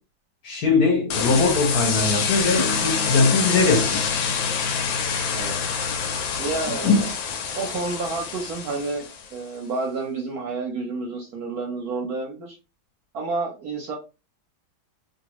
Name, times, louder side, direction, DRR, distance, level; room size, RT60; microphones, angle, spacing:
voice 1, 0.4-4.0 6.8-7.0, left 3 dB, 55° left, 1.3 m, -20 dB
sound 1, 1.1-9.3, left 6 dB, 80° left, 1.4 m, -26 dB
Acoustic guitar / Strum, 2.5-7.1 9.0-9.1, left 3 dB, 35° left, 0.5 m, -37 dB
voice 2, 5.3-5.7 6.4-7.1 7.6-9.0 9.3-12.6 13.1-13.9, right 3 dB, 65° right, 1.0 m, -29 dB
3.1 x 2.5 x 2.9 m
omnidirectional pair, 2.1 m